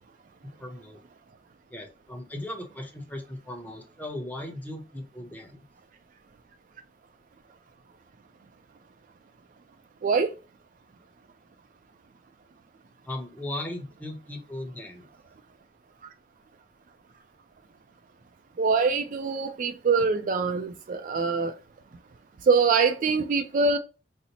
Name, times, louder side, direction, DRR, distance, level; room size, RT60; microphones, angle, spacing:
voice 1, 0.4-1.0 1.7-5.6 13.1-15.1, left 1 dB, 10° left, 0.7 m, -37 dB
voice 2, 18.6-21.5 22.5-23.8, right 4 dB, 50° right, 0.3 m, -24 dB
4.1 x 2.0 x 2.8 m
head